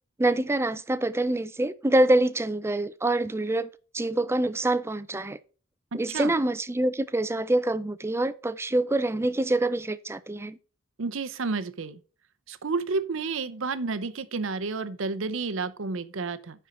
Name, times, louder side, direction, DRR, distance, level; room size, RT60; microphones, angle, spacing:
voice 1, 0.2-3.7 3.9-5.4 5.9-10.6, right 1 dB, 10° right, 0.4 m, -25 dB
voice 2, 5.9-6.3 11.0-12.0 12.5-16.7, right 4 dB, 70° right, 0.7 m, -31 dB
10.0 x 4.4 x 5.3 m
head